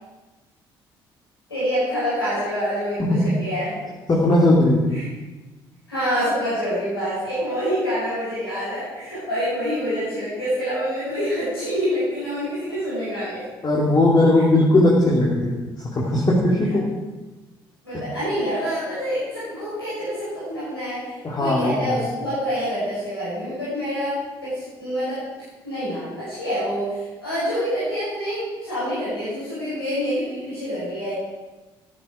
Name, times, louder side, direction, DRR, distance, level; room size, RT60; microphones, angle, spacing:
voice 1, 1.5-3.8 4.9-5.1 5.9-13.4 16.7-16.8 17.8-25.2 25.6-31.1, equal, 90° left, -11 dB, 5.2 m, -26 dB
voice 2, 3.0-3.3 4.1-4.8 13.6-16.8 17.9-18.0 21.2-21.7, left 1 dB, 35° left, -4 dB, 2.7 m, -18 dB
13.5 x 10.5 x 4.9 m, 1.2 s
figure-of-eight pair, 50°, 12 cm